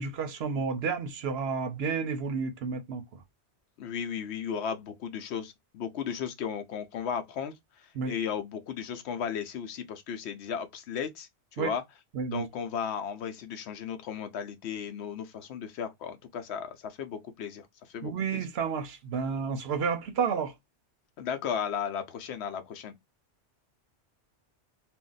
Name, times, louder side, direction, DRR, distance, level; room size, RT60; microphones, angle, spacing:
voice 1, 0.0-3.2 8.0-8.1 11.6-11.7 12.1-12.4 18.0-20.5, right 5 dB, 70° right, 0.8 m, -31 dB
voice 2, 3.8-11.8 12.3-18.4 21.2-22.9, left 7 dB, 75° left, 0.8 m, -35 dB
2.5 x 2.1 x 3.8 m
omnidirectional pair, 1.2 m